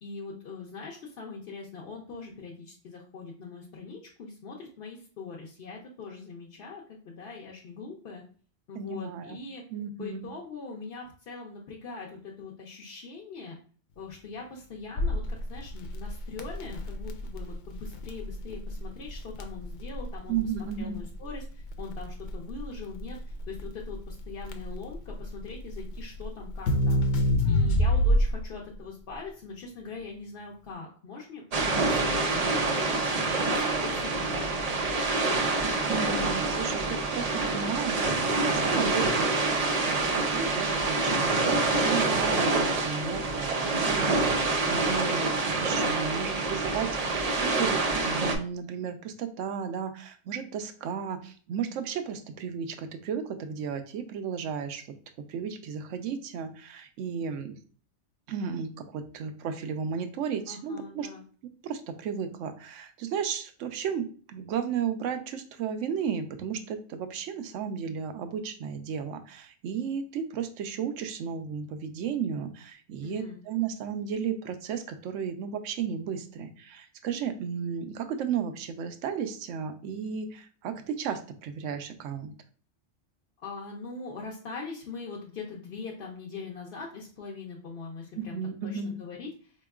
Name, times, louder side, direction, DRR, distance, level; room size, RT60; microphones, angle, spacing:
voice 1, 0.0-8.2 8.7-9.6 10.0-13.6 14.0-27.0 27.5-34.7 44.7-45.3 60.5-61.2 73.0-73.4 83.4-89.6, left 4 dB, 55° left, -2 dB, 0.8 m, -42 dB
voice 2, 8.7-9.4 9.7-10.2 20.3-21.0 35.9-54.8 55.3-57.6 58.3-61.1 61.6-82.3 88.1-89.0, right 7 dB, 80° right, 8 dB, 0.9 m, -34 dB
Crackle, 15.0-28.5, equal, 80° left, 0.9 m, -28 dB
sound 1, 31.5-48.4, right 3 dB, 60° right, 0.4 m, -26 dB
4.3 x 2.9 x 2.3 m, 0.42 s
omnidirectional pair, 1.3 m